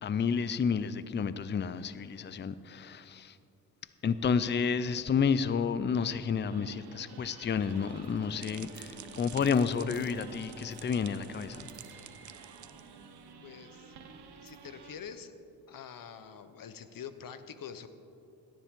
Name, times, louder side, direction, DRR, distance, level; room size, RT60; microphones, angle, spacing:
voice 1, 0.0-3.4 4.0-11.7, left 6 dB, 30° left, 14 dB, 0.5 m, -30 dB
sound 1, 6.5-15.0, right 5 dB, 75° right, 1.2 m, -51 dB
sound 2, 7.4-11.7, left 2 dB, 10° right, 2.9 m, -54 dB
sound 3, 7.9-13.3, right 10 dB, 50° right, 0.6 m, -50 dB
voice 2, 13.4-13.9 14.4-15.3 15.7-17.9, left 7 dB, 55° left, 10 dB, 1.0 m, -45 dB
17.0 x 10.5 x 3.7 m, 2.7 s
cardioid pair, 65°, 39 cm